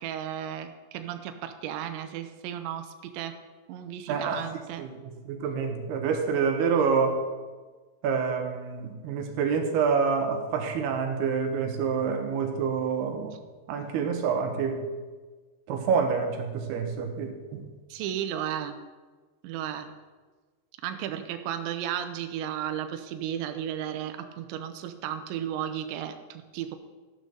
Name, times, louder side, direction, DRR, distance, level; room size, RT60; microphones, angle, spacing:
voice 1, 0.0-3.3 3.7-4.9 17.9-18.8 19.4-19.9 20.8-26.8, right 10 dB, 85° right, 8 dB, 3.0 m, -34 dB
voice 2, 4.1-4.4 4.8-7.2 8.0-13.4 13.7-14.9 15.7-17.7, right 6 dB, 70° right, 4 dB, 2.9 m, -27 dB
13.5 x 11.5 x 4.0 m, 1.3 s
omnidirectional pair, 5.2 m